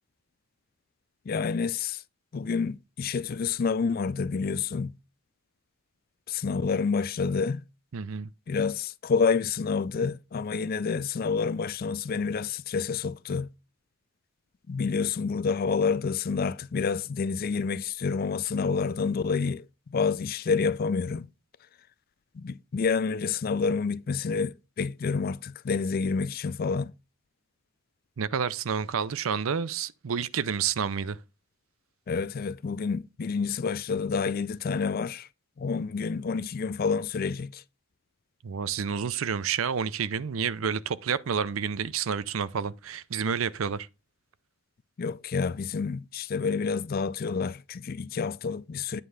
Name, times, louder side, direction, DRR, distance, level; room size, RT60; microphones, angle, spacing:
voice 1, 1.3-2.0 2.3-4.9 6.3-7.6 8.5-13.5 14.7-19.6 19.9-21.3 22.4-26.9 32.1-35.3 35.6-37.6 45.0-49.0, left 5 dB, 45° left, 0.4 m, -28 dB
voice 2, 7.9-8.3 28.2-31.2 38.4-43.9, right 6 dB, 70° right, 0.5 m, -29 dB
9.2 x 3.3 x 6.4 m
head